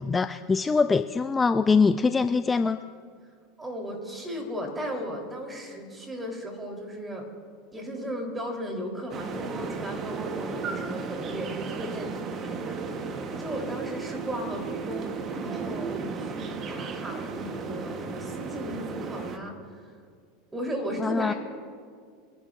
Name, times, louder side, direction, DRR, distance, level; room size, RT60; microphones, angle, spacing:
voice 1, 0.0-2.8 21.0-21.3, left 4 dB, 20° left, 10 dB, 0.4 m, -23 dB
voice 2, 3.6-7.3 7.7-19.9 20.5-21.3, equal, 15° right, 1 dB, 3.7 m, -36 dB
sound 1, 9.1-19.4, right 5 dB, 40° right, 1.2 m, -35 dB
25.0 x 11.0 x 2.6 m, 2.1 s
hypercardioid pair, 90°, 0 cm